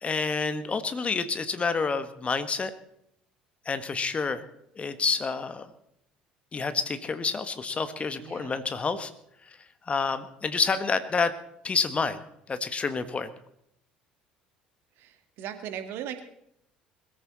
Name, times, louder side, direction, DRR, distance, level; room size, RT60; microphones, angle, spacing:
voice 1, 0.0-2.7 3.6-4.4 4.8-5.7 6.5-9.1 9.9-11.3 11.6-12.2 12.5-13.3, left 4 dB, 25° left, 11 dB, 1.6 m, -28 dB
voice 2, 8.2-8.6 15.0-16.2, right 9 dB, 55° right, 9 dB, 2.2 m, -38 dB
21.5 x 14.5 x 4.2 m, 0.75 s
figure-of-eight pair, 60°, 4 cm